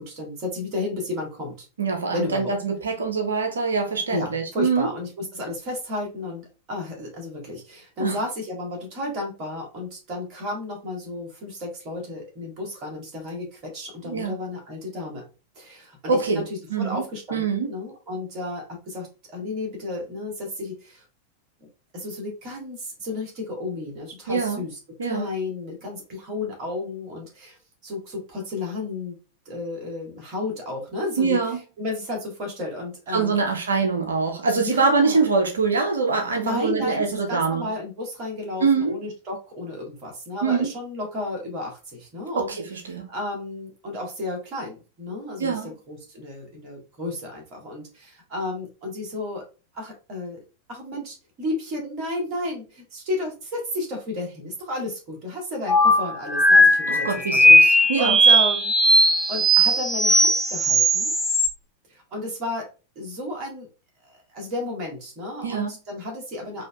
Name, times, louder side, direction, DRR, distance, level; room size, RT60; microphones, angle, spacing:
voice 1, 0.0-1.7 2.1-2.5 4.1-15.2 15.5-16.4 16.8-19.1 19.3-21.0 21.9-27.6 27.8-29.2 29.4-31.4 31.8-33.4 34.6-35.2 36.4-42.5 42.9-45.5 45.9-49.4 49.7-50.4 50.7-61.1 61.9-62.7 62.9-63.7 64.0-66.7, left 2 dB, 35° right, 1.6 m, -33 dB
voice 2, 1.8-4.9 8.0-8.2 14.0-14.3 16.1-16.4 16.7-17.0 17.3-17.7 24.3-24.6 25.0-25.3 31.2-31.6 33.1-37.7 38.6-38.9 40.4-40.7 42.3-43.1 45.4-45.7 56.9-58.2 65.4-65.7, right 4 dB, 70° right, 0.6 m, -24 dB
sound 1, 55.7-61.5, equal, ahead, 0.7 m, -17 dB
4.3 x 2.7 x 2.3 m
figure-of-eight pair, 90°, 0 cm